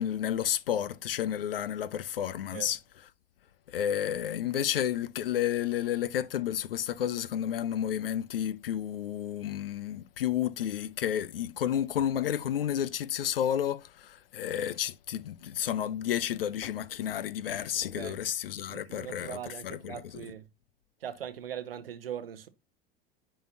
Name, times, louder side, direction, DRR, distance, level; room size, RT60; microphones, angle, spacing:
voice 1, 0.0-2.8 3.7-20.3, left 10 dB, 70° left, 0.5 m, -31 dB
voice 2, 18.7-20.5 21.0-22.5, right 9 dB, 70° right, 0.8 m, -40 dB
10.0 x 3.8 x 2.7 m
figure-of-eight pair, 80°, 30 cm